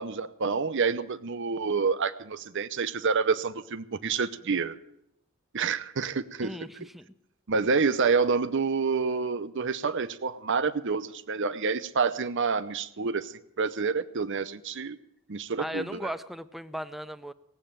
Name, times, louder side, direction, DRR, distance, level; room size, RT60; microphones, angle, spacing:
voice 1, 0.0-4.7 5.5-6.5 7.5-15.0 15.3-16.1, right 5 dB, 60° right, 13 dB, 0.7 m, -28 dB
voice 2, 6.4-7.1 15.6-17.3, equal, ahead, 13 dB, 0.5 m, -37 dB
18.5 x 8.0 x 8.8 m, 0.81 s
head